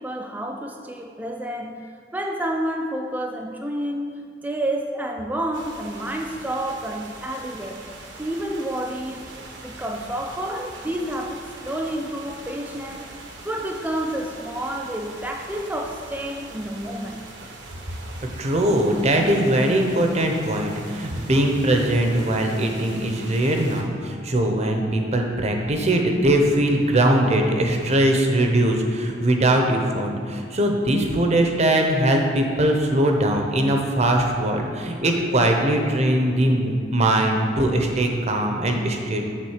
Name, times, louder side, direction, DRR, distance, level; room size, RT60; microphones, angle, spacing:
voice 1, 0.0-1.9 2.1-7.8 8.2-9.3 9.6-13.2 13.4-17.2, right 1 dB, 10° right, 2 dB, 0.4 m, -29 dB
sound 1, 5.5-23.8, right 2 dB, 75° right, 1.0 m, -42 dB
voice 2, 18.4-39.3, right 1 dB, 35° right, 2 dB, 0.8 m, -21 dB
7.5 x 3.8 x 6.5 m, 2.3 s
head